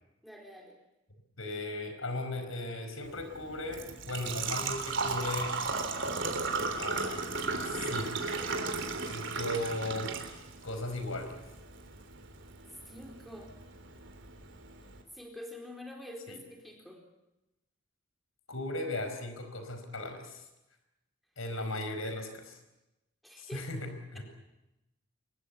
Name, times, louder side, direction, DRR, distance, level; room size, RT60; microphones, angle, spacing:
voice 1, 0.2-0.8 12.9-13.5 15.1-17.0 23.2-23.7, left 1 dB, ahead, 1 dB, 4.2 m, -46 dB
voice 2, 1.4-5.6 6.7-8.1 9.0-10.1 10.6-11.4 16.3-16.4 18.5-20.4 21.4-22.6 23.4-24.2, left 1 dB, 85° left, 7 dB, 4.9 m, -37 dB
Engine / Trickle dribble / Fill (with liquid), 3.0-15.0, right 4 dB, 60° right, 3.4 m, -36 dB
24.0 x 22.0 x 8.3 m, 0.96 s
head